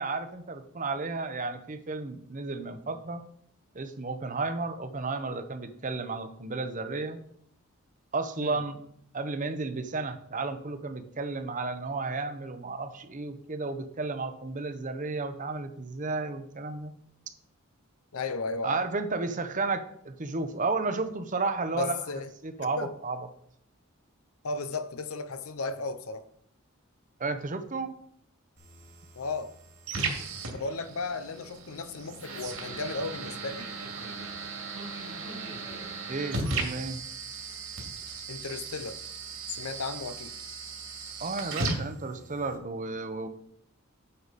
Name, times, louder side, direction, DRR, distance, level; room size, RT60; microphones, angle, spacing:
voice 1, 0.0-3.2 3.7-7.2 8.1-8.8 9.1-16.9 18.6-22.0 22.4-23.2 27.2-27.9 36.1-37.0 41.2-43.3, right 3 dB, 35° right, 0.8 m, -33 dB
voice 2, 18.1-18.8 21.7-22.3 22.8-22.9 24.4-26.3 29.2-29.5 30.5-33.7 38.3-39.0 39.5-40.3, left 3 dB, 80° left, 0.7 m, -34 dB
sound 1, 28.6-42.6, right 3 dB, 65° right, 2.4 m, -37 dB
Human voice, 35.2-36.9, equal, 30° left, 2.1 m, -52 dB
9.6 x 6.6 x 4.1 m
head